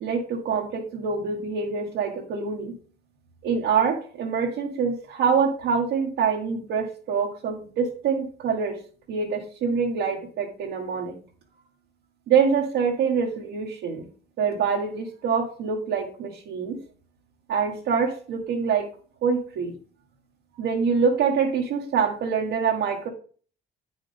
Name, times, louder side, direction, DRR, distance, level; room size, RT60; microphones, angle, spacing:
voice 1, 0.0-2.7 3.4-8.8 9.1-11.1 12.3-14.0 14.4-16.8 17.5-18.9 19.2-19.7 20.6-23.1, right 6 dB, 85° right, -3 dB, 1.4 m, -25 dB
8.9 x 6.2 x 3.4 m, 0.41 s
cardioid pair, 90°, 20 cm